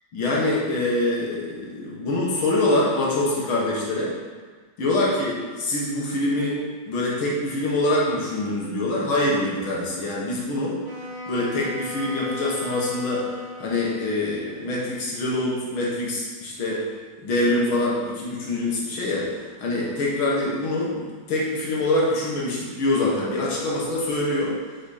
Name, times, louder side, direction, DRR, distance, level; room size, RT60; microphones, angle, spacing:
voice 1, 0.1-4.1 4.8-6.6 6.9-10.7 11.3-13.3 13.6-16.8 17.2-24.6, left 2 dB, 80° left, -4 dB, 2.3 m, -24 dB
Wind instrument woodwind instrument, 10.8-14.4, left 2 dB, 75° right, 2.6 m, -36 dB
6.1 x 6.0 x 4.3 m, 1.4 s
omnidirectional pair, 2.2 m